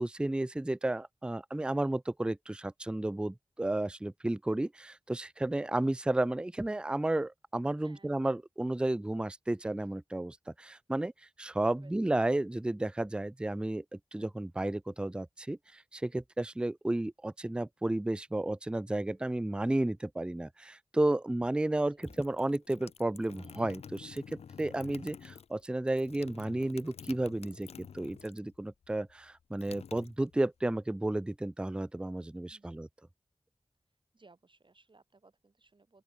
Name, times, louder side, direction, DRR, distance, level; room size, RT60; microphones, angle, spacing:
voice 1, 0.0-11.1 11.4-13.8 14.1-32.9, right 1 dB, 10° right, 0.4 m, -32 dB
voice 2, 7.8-8.2 11.8-11.9 21.9-22.1 32.5-32.8 34.1-36.0, right 3 dB, 50° right, 1.9 m, -62 dB
sound 1, 21.8-28.6 28.8-30.7, left 7 dB, 90° left, 0.4 m, -50 dB
open air
cardioid pair, 40°, 10 cm